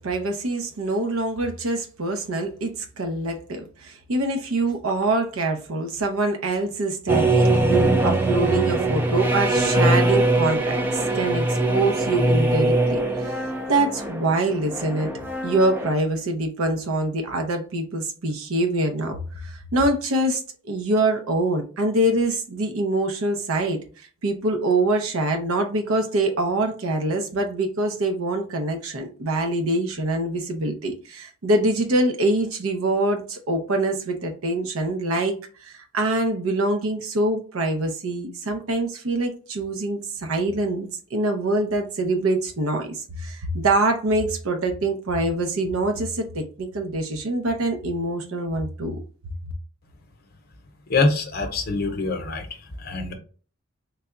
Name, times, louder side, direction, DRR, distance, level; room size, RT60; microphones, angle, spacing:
voice 1, 0.0-15.1 15.4-49.0, right 2 dB, 90° right, 0.7 m, -25 dB
sound 1, 7.1-15.9, right 2 dB, 10° right, 0.4 m, -22 dB
voice 2, 50.9-52.5 52.8-53.1, left 3 dB, 45° left, 0.8 m, -24 dB
3.3 x 2.3 x 3.8 m
head